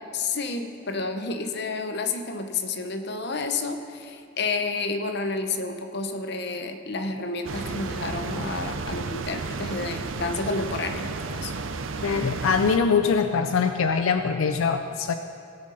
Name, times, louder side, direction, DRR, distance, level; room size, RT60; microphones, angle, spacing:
voice 1, 0.1-11.5, left 3 dB, 55° left, 7 dB, 0.8 m, -30 dB
sound 1, 7.4-12.8, right 4 dB, 70° right, 0.6 m, -32 dB
voice 2, 12.0-15.1, left 5 dB, 85° left, 8 dB, 0.5 m, -23 dB
18.5 x 6.3 x 5.6 m, 2.5 s
head